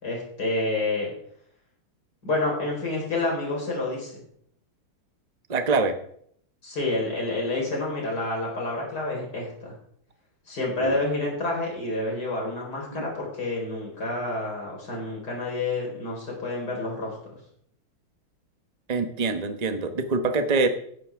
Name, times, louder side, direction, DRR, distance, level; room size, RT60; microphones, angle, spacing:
voice 1, 0.0-1.1 2.2-4.1 6.6-9.7 10.5-17.1, left 2 dB, 45° left, -2 dB, 5.1 m, -28 dB
voice 2, 5.5-5.9 10.8-11.0 12.9-13.0 18.9-20.7, right 3 dB, 70° right, 8 dB, 0.3 m, -24 dB
15.0 x 11.5 x 3.6 m, 0.67 s
omnidirectional pair, 2.4 m